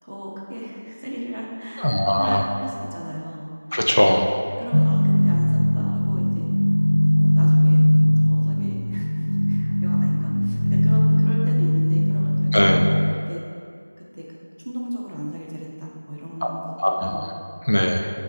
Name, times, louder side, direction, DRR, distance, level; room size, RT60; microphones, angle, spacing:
voice 1, 0.0-3.5 4.6-6.5 7.1-9.1 9.5-12.8 13.3-13.4 14.0-14.3 14.6-16.7 17.1-17.2, equal, 55° right, -4 dB, 2.1 m, -34 dB
voice 2, 1.8-2.4 3.7-4.2 12.5-12.8 16.8-17.2 17.7-18.1, equal, 45° left, 2 dB, 0.8 m, -19 dB
sound 1, 4.7-13.1, left 1 dB, 75° left, 0.3 m, -19 dB
15.5 x 5.8 x 3.4 m, 2.3 s
figure-of-eight pair, 180°, 0 cm